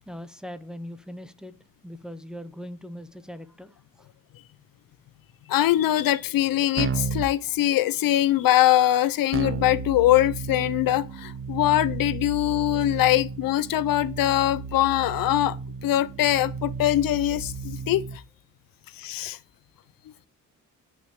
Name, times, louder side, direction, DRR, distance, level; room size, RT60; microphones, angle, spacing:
voice 1, 0.1-1.5 1.8-3.8, equal, ahead, 0.8 m, -40 dB
voice 2, 5.5-15.6 15.8-18.2 19.0-19.4, left 14 dB, 80° left, 0.8 m, -22 dB
Keyboard (musical), 6.8-7.3 9.3-18.2, right 5 dB, 40° right, 0.8 m, -33 dB
9.6 x 6.3 x 7.2 m
cardioid pair, 140°, 34 cm